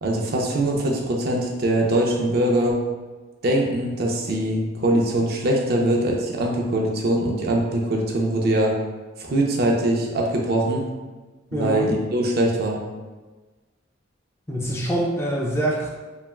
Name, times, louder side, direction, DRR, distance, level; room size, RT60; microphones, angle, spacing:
voice 1, 0.0-2.8 3.4-8.7 9.2-10.8 11.5-12.8, right 1 dB, 50° right, -1 dB, 0.5 m, -22 dB
voice 2, 11.5-11.9 14.5-15.9, right 1 dB, 15° left, -3 dB, 0.3 m, -25 dB
3.3 x 2.2 x 2.3 m, 1.3 s
head